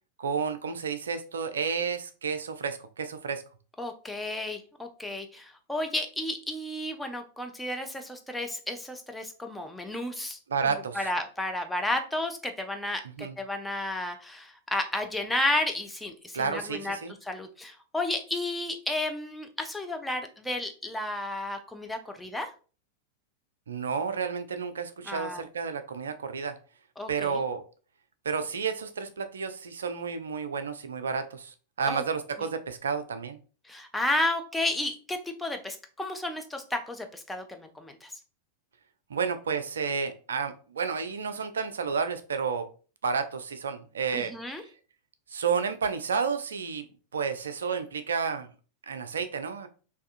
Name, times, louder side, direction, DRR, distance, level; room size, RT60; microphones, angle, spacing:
voice 1, 0.2-3.4 10.5-11.1 13.2-13.3 16.3-17.1 23.7-26.6 27.1-27.6 28.2-33.4 39.1-42.7 43.0-44.3 45.3-46.9 47.1-48.5 48.8-49.7, right 6 dB, 70° right, 9 dB, 0.3 m, -31 dB
voice 2, 3.8-10.4 10.9-17.0 17.2-22.5 25.0-25.4 27.0-27.4 31.9-32.0 33.6-38.1 44.1-44.6, left 1 dB, 5° left, 4 dB, 0.5 m, -32 dB
3.5 x 2.6 x 2.4 m, 0.37 s
figure-of-eight pair, 90°, 0 cm